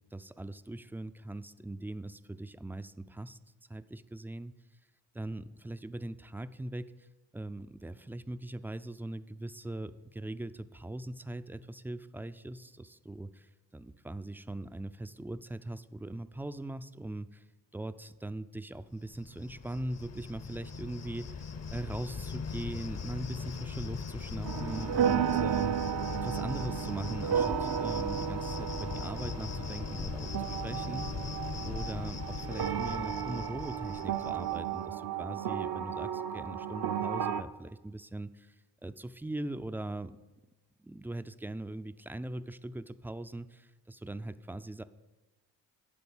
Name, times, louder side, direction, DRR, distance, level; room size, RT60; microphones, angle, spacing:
voice 1, 0.1-3.4 3.7-4.5 5.1-7.1 7.3-17.4 17.7-25.9 26.1-31.1 31.6-38.5 38.8-40.2 40.8-44.8, right 1 dB, 5° right, 12 dB, 0.3 m, -40 dB
Cricket, 19.0-34.7, left 5 dB, 35° left, 0.7 m, -39 dB
sound 1, 24.4-37.4, right 9 dB, 55° right, 0.6 m, -33 dB
11.0 x 3.9 x 7.1 m, 1.1 s
hypercardioid pair, 40°, 45 cm